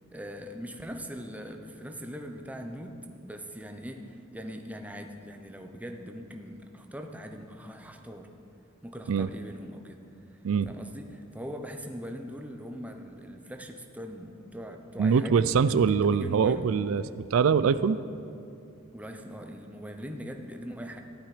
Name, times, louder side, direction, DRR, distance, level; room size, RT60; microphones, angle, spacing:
voice 1, 0.1-8.3 8.8-10.0 10.3-10.4 10.6-16.7 18.9-21.0, equal, 5° right, 4 dB, 0.8 m, -41 dB
voice 2, 15.0-18.0, right 6 dB, 80° right, 15 dB, 0.4 m, -23 dB
14.5 x 12.0 x 5.0 m, 2.6 s
head